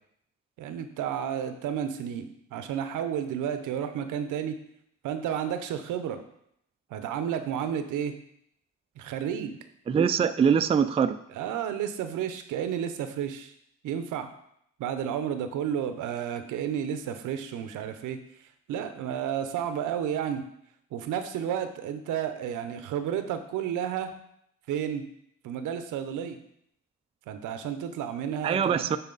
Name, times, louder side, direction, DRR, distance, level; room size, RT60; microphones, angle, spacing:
voice 1, 0.6-4.6 5.0-6.2 6.9-8.1 9.0-9.6 11.3-13.5 13.8-14.3 14.8-18.2 18.7-20.4 20.9-24.1 24.7-25.1 25.4-26.4 27.3-29.0, right 9 dB, 85° right, 9 dB, 0.8 m, -31 dB
voice 2, 9.9-11.2 28.4-29.0, right 7 dB, 20° right, 10 dB, 0.3 m, -23 dB
9.1 x 4.1 x 3.9 m, 0.73 s
cardioid pair, 90°, 30 cm